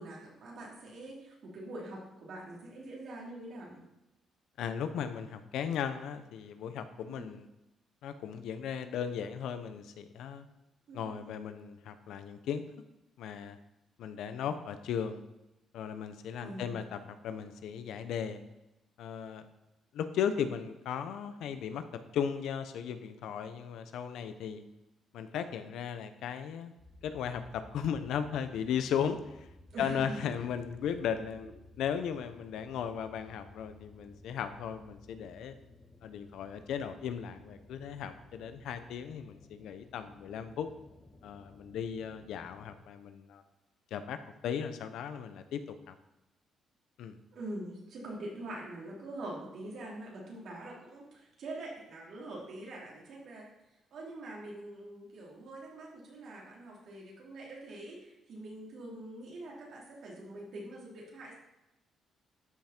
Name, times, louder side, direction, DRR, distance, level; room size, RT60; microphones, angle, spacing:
voice 1, 0.0-3.8 7.1-7.3 10.9-11.3 16.4-16.9 29.7-30.3 31.4-31.5 47.3-53.5 53.9-61.3, right 1 dB, 65° right, -3 dB, 3.8 m, -44 dB
voice 2, 4.6-7.5 8.0-10.5 10.9-12.6 13.2-13.6 14.0-15.2 15.7-18.4 19.0-19.5 19.9-21.8 22.1-24.6 25.1-26.7 27.0-29.5 29.8-35.5 36.0-40.7 41.2-43.4 43.9-45.6 45.9-46.0 47.0-47.2, left 8 dB, 80° left, 10 dB, 0.8 m, -36 dB
sound 1, 26.8-42.8, left 1 dB, 40° left, 3.3 m, -56 dB
13.0 x 5.8 x 4.5 m, 0.94 s
cardioid pair, 90°, 0 cm